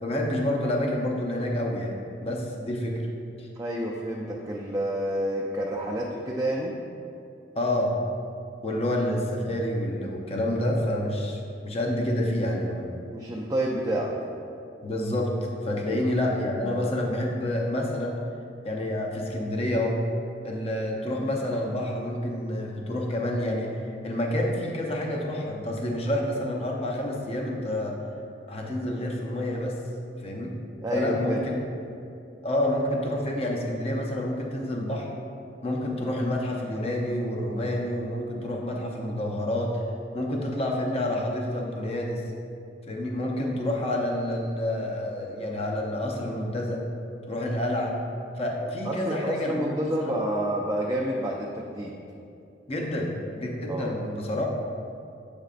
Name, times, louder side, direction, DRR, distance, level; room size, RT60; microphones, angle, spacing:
voice 1, 0.0-2.0 2.2-3.0 3.4-3.5 7.5-8.0 8.6-12.9 14.8-15.4 15.6-18.2 18.6-20.0 20.4-28.0 28.4-29.8 30.2-30.5 30.9-31.5 32.4-35.1 35.6-39.8 40.1-42.2 42.9-46.8 47.3-48.0 48.4-50.2 52.7-54.5, left 1 dB, 35° left, 0 dB, 0.6 m, -28 dB
voice 2, 3.6-6.7 13.1-14.1 15.8-16.0 30.8-31.4 48.6-51.9 53.7-53.9, right 1 dB, 15° right, -3 dB, 0.4 m, -29 dB
7.5 x 5.1 x 2.5 m, 2.6 s
head